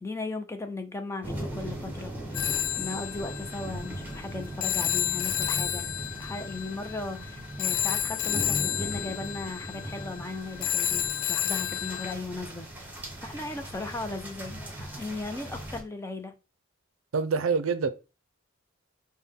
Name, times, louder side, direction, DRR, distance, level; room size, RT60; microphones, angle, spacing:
voice 1, 0.0-5.9 6.2-11.0 11.3-12.8 13.2-16.4, left 3 dB, 15° left, 0.4 m, -37 dB
sound 1, 1.2-15.8, right 1 dB, 10° right, 0.9 m, -39 dB
Telephone, 2.3-12.1, left 10 dB, 85° left, 0.4 m, -31 dB
voice 2, 17.1-17.9, right 5 dB, 80° right, 0.5 m, -25 dB
5.5 x 2.1 x 3.5 m
head